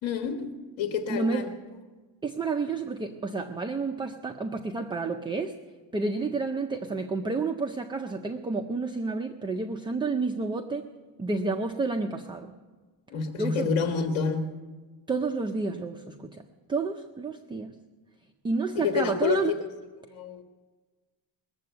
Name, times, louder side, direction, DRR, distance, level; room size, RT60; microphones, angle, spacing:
voice 1, 0.0-1.5 13.1-14.6 18.7-19.7 20.1-20.4, left 6 dB, 80° left, 4 dB, 1.5 m, -29 dB
voice 2, 1.1-1.5 2.2-5.6 5.9-10.8 11.2-12.5 13.4-13.7 15.1-16.4 16.7-17.8 18.4-19.5, right 3 dB, 10° right, 4 dB, 0.4 m, -30 dB
21.0 x 7.6 x 9.2 m, 1.3 s
cardioid pair, 165°, 46 cm